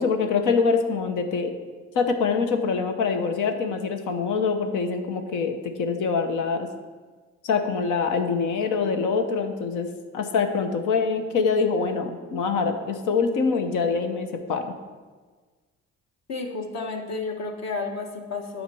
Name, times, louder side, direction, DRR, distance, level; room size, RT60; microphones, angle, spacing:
voice 1, 0.0-1.5 1.9-6.7 7.4-9.9 10.1-14.7, left 5 dB, 90° left, 5 dB, 1.0 m, -24 dB
voice 2, 16.3-18.6, left 3 dB, 60° left, 2 dB, 1.4 m, -31 dB
9.8 x 4.4 x 7.0 m, 1.4 s
cardioid pair, 90°, 30 cm